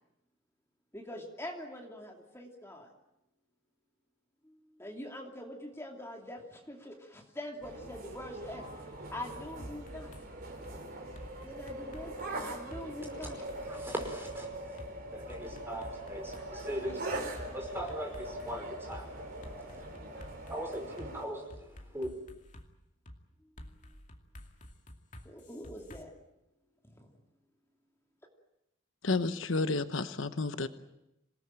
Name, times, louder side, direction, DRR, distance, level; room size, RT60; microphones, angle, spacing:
voice 1, 0.9-2.9 4.4-8.7 9.1-10.1 11.4-12.1 12.4-13.8 16.9-17.3 25.2-26.1 26.9-27.1 30.6-30.7, left 1 dB, 10° left, 2.7 m, -44 dB
sound 1, 7.6-21.2, right 1 dB, 45° right, 4.6 m, -42 dB
sound 2, 9.6-10.2 10.6-10.8 11.1-12.8 13.2-14.4 14.8-14.9 15.3-18.5 18.9-19.0 19.4-21.1 21.5-22.7 23.1-23.2 23.6-26.0, left 1 dB, 35° left, 2.4 m, -50 dB
voice 2, 13.0-17.3 17.5-22.1, equal, 10° right, 5.2 m, -41 dB
voice 3, 29.0-30.7, left 3 dB, 70° left, 1.1 m, -31 dB
27.0 x 18.5 x 8.9 m
head